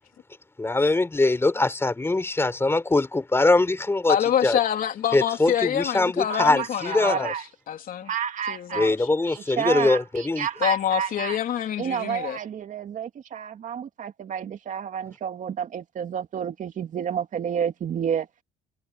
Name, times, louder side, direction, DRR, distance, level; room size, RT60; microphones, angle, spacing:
voice 1, 0.6-4.2 4.4-4.6 5.1-7.3 8.7-10.5, left 2 dB, 15° left, 4.1 m, -22 dB
voice 2, 4.1-7.3 7.7-8.1 8.5-9.0 10.6-12.4, left 10 dB, 55° left, 3.5 m, -26 dB
voice 3, 6.2-7.4 8.0-8.9 9.3-11.4 11.8-18.3, right 8 dB, 50° right, 2.3 m, -30 dB
cardioid pair, 110°, 17 cm